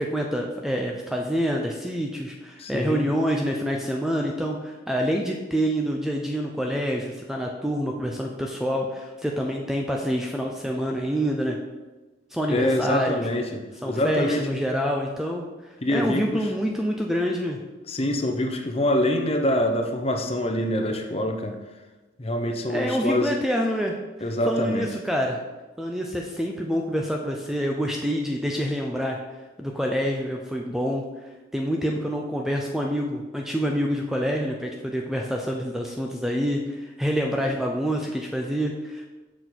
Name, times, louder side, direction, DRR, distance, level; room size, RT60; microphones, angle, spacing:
voice 1, 0.0-11.6 12.3-13.2 13.8-17.6 22.7-25.4 25.8-29.2 29.6-31.0 31.5-39.1, equal, ahead, 1 dB, 0.4 m, -27 dB
voice 2, 2.6-3.1 12.5-14.4 15.8-16.5 17.9-21.6 22.2-23.3 24.2-24.9, left 1 dB, 30° left, 4 dB, 0.7 m, -25 dB
6.8 x 6.2 x 4.2 m, 1.2 s
head